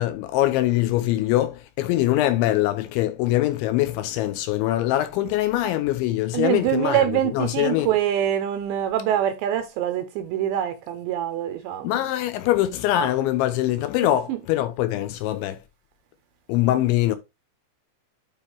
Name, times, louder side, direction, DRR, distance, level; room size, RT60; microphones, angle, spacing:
voice 1, 0.0-7.9 11.8-15.6 16.5-17.2, left 14 dB, 85° left, 2.9 m, -23 dB
voice 2, 6.3-11.9, right 11 dB, 85° right, 2.7 m, -24 dB
9.0 x 3.6 x 4.6 m
omnidirectional pair, 5.7 m